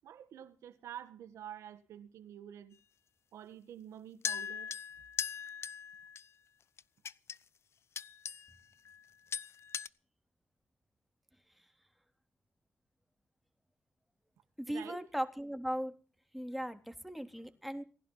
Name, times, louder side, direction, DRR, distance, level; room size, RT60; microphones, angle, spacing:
voice 1, 0.0-2.8 3.3-4.7 14.7-15.0, right 10 dB, 90° right, 1.8 m, -48 dB
sound 1, 4.2-6.3 6.8-7.4 8.0-8.6 8.8-9.0 9.3-9.9, left 7 dB, 65° left, 0.7 m, -40 dB
voice 2, 14.6-15.9 16.3-17.8, equal, ahead, 3.6 m, -38 dB
18.5 x 11.5 x 5.8 m
supercardioid pair, 50°, 5 cm